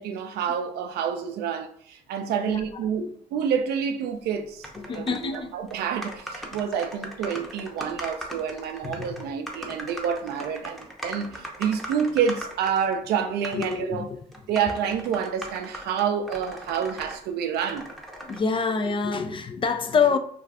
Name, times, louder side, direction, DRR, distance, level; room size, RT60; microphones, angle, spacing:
voice 1, 0.0-14.1 14.5-17.9, right 7 dB, 70° right, 0.5 m, -28 dB
voice 2, 2.3-2.6 3.0-3.1 4.8-5.5 8.8-9.3 13.5-14.1 18.2-20.2, left 5 dB, 30° left, 0.3 m, -26 dB
sound 1, 4.6-5.4 5.7-5.8 6.0-13.0 13.4-13.8 14.3-17.2 17.5-18.4, equal, ahead, 0.7 m, -39 dB
2.4 x 2.3 x 3.4 m
supercardioid pair, 70°, 17 cm